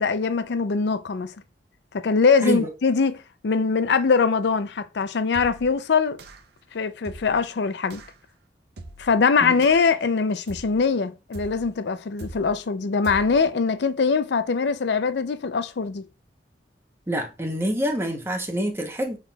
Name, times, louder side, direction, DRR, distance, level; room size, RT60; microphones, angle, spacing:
voice 1, 0.0-1.3 1.9-6.2 6.7-8.0 9.0-16.1, left 5 dB, 70° left, 0.5 m, -22 dB
sound 1, 5.3-5.8 6.2-6.6 7.0-7.5 7.9-8.2 8.8-9.2 9.6-10.0 10.5-10.9 11.3-11.8 12.2-12.6 13.0-13.5, right 2 dB, 65° right, 0.6 m, -41 dB
voice 2, 17.1-19.2, equal, 15° right, 0.9 m, -26 dB
5.6 x 3.6 x 2.3 m
head